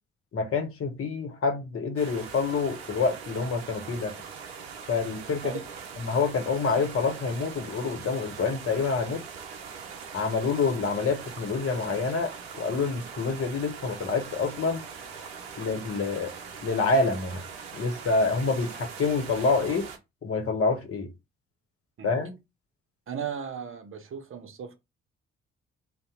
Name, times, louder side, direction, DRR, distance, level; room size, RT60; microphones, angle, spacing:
voice 1, 0.3-4.1 4.9-5.6 6.0-9.2 10.1-14.8 15.6-16.3 16.6-17.4 17.7-19.9 20.2-21.1 22.0-22.3, left 4 dB, 50° left, 1.0 m, -27 dB
sound 1, 2.0-20.0, right 6 dB, 85° right, 0.5 m, -42 dB
voice 2, 23.1-24.8, right 7 dB, 45° right, 0.7 m, -36 dB
2.7 x 2.2 x 3.6 m
hypercardioid pair, 40°, 29 cm